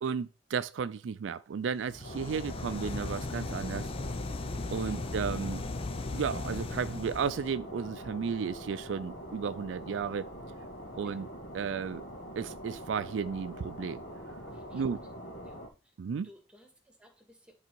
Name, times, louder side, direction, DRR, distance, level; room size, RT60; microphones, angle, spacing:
voice 1, 0.0-3.9 4.7-5.6 6.1-10.3 11.0-11.3 11.5-12.0 12.4-14.0 14.7-15.0 16.0-16.3, right 6 dB, 80° right, 0.4 m, -33 dB
sound 1, 1.8-7.5, left 3 dB, 30° left, 0.4 m, -37 dB
sound 2, 2.0-15.7, equal, 75° left, 2.1 m, -44 dB
voice 2, 14.5-15.5 15.8-15.9 16.2-17.6, left 1 dB, 5° right, 1.8 m, -58 dB
10.5 x 4.0 x 4.6 m
head